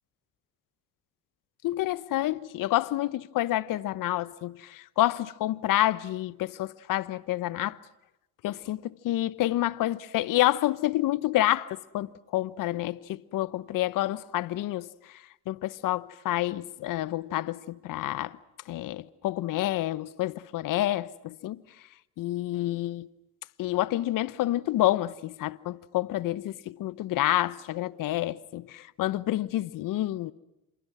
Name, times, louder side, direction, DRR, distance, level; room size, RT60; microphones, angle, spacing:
voice 1, 1.6-7.8 8.4-14.9 15.5-18.4 18.7-21.6 22.2-23.1 23.6-30.3, left 15 dB, 65° left, 1.0 m, -28 dB
28.5 x 27.0 x 6.2 m
supercardioid pair, 70°, 36 cm